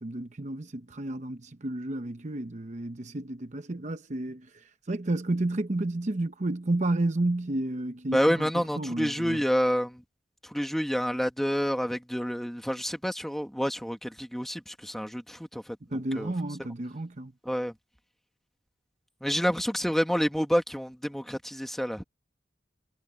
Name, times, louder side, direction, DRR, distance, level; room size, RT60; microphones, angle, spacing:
voice 1, 0.0-9.4 15.9-17.3, right 2 dB, 40° right, 0.9 m, -31 dB
voice 2, 8.1-10.0 10.5-15.6 16.2-16.3 17.5-17.7 19.2-22.0, equal, ahead, 1.9 m, -28 dB
head